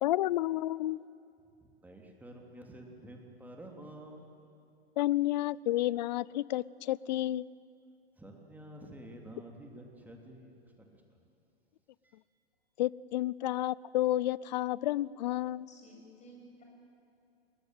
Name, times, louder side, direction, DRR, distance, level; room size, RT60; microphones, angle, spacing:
voice 1, 0.0-1.0 5.0-7.5 12.8-15.7, left 15 dB, 45° left, 22 dB, 0.5 m, -30 dB
voice 2, 1.6-4.4 8.2-10.6 10.9-11.2 12.0-12.2, right 1 dB, 5° right, 1 dB, 3.1 m, -50 dB
voice 3, 15.7-16.6, equal, 20° left, 0 dB, 7.6 m, -54 dB
20.5 x 20.0 x 9.2 m, 2.6 s
figure-of-eight pair, 105°, 32 cm